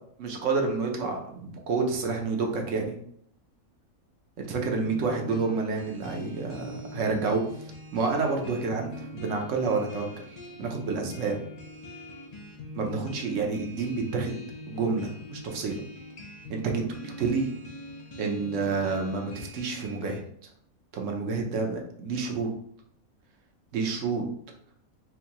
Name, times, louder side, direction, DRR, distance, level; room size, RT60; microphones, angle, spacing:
voice 1, 0.2-2.9 4.5-7.4 7.9-10.1 10.6-11.4 12.7-14.4 14.7-15.8 16.5-17.5 18.2-20.2 20.9-22.5 23.7-24.2, right 4 dB, 65° right, 2 dB, 1.0 m, -29 dB
sound 1, 4.8-20.2, left 1 dB, 60° left, 0.4 m, -43 dB
4.5 x 2.2 x 2.9 m, 0.66 s
omnidirectional pair, 1.5 m